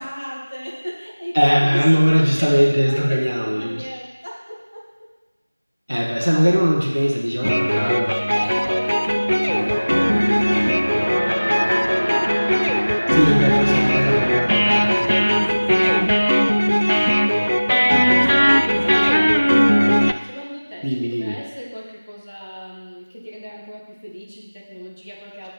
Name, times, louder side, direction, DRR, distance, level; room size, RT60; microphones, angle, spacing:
voice 1, 0.0-4.8 8.0-12.5 15.0-17.1 17.8-25.5, equal, 45° left, -4 dB, 1.4 m, -36 dB
voice 2, 1.3-3.8 5.9-8.1 13.1-15.1 20.8-21.4, equal, 35° right, -2 dB, 0.7 m, -19 dB
sound 1, 7.4-20.1, equal, 65° left, 0.4 m, -18 dB
Alarm, 9.5-16.6, equal, 10° left, 0.5 m, -27 dB
7.0 x 4.9 x 3.8 m, 1.1 s
figure-of-eight pair, 180°, 0 cm